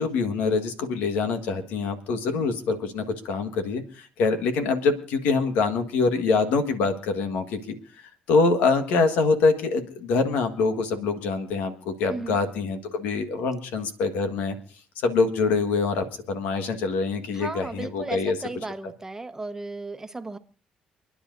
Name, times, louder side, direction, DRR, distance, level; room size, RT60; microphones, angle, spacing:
voice 1, 0.0-7.7 8.3-14.6 15.0-18.4, left 4 dB, 90° left, 1.6 m, -25 dB
voice 2, 17.3-20.4, right 2 dB, 15° right, 1.1 m, -35 dB
29.5 x 10.0 x 2.7 m
cardioid pair, 80°, 3 cm